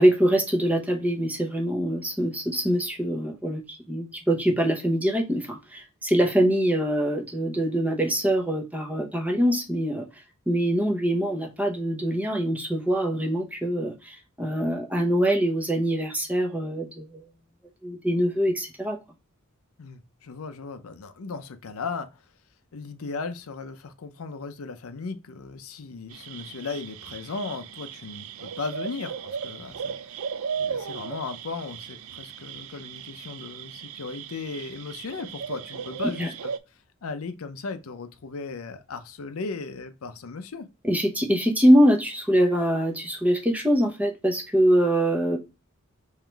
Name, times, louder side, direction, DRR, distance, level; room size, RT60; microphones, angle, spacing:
voice 1, 0.0-10.0 10.5-17.2 17.8-19.0 36.2-36.3 40.8-45.4, equal, 5° right, 0.9 m, -23 dB
voice 2, 19.8-22.2 22.7-29.9 30.6-36.5 37.0-40.7, left 4 dB, 80° left, 0.6 m, -36 dB
sound 1, 26.1-36.6, right 6 dB, 80° right, 0.4 m, -36 dB
3.8 x 3.1 x 4.5 m
head